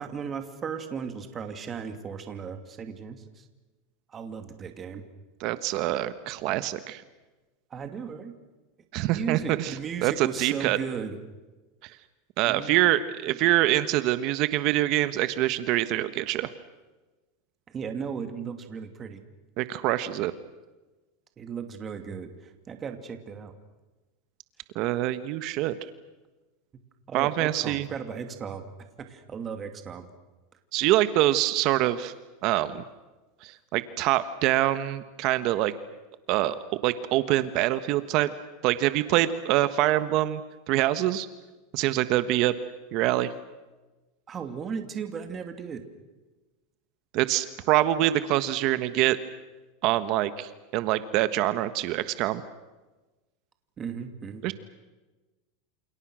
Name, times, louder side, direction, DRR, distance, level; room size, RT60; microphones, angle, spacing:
voice 1, 0.0-3.4 4.1-5.0 7.7-8.4 9.1-11.2 12.5-12.7 13.3-13.4 17.7-19.2 21.4-23.5 27.1-28.6 29.0-30.1 44.3-45.8 53.8-54.4, right 6 dB, 25° right, 7 dB, 2.6 m, -36 dB
voice 2, 5.4-7.0 8.9-9.8 10.0-10.8 11.8-11.9 12.4-16.5 19.6-20.3 24.7-25.7 27.1-27.9 30.7-32.1 32.4-32.8 33.4-35.7 36.3-36.5 36.8-38.3 38.6-40.4 40.7-41.3 41.7-42.5 42.9-43.3 47.1-49.2 49.8-52.4 54.4-54.5, right 15 dB, 50° right, 12 dB, 1.3 m, -25 dB
28.5 x 28.5 x 6.4 m, 1.2 s
supercardioid pair, 140°, 0 cm